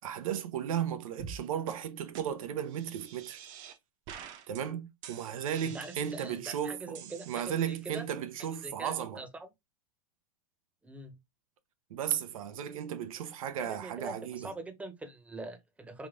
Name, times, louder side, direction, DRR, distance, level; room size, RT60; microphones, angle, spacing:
voice 1, 0.0-3.4 4.5-9.2 11.9-14.5, right 9 dB, 80° right, 0.7 m, -35 dB
sound 1, 1.2-1.4 1.7-1.8 2.1-2.2 2.7-3.8 4.1-4.6 5.0-6.4 7.0-7.9, right 7 dB, 45° right, 0.9 m, -47 dB
voice 2, 5.6-8.1 8.6-9.5 10.8-11.2 13.6-16.1, right 2 dB, 5° right, 0.9 m, -43 dB
3.6 x 2.4 x 3.6 m
hypercardioid pair, 115°, 18 cm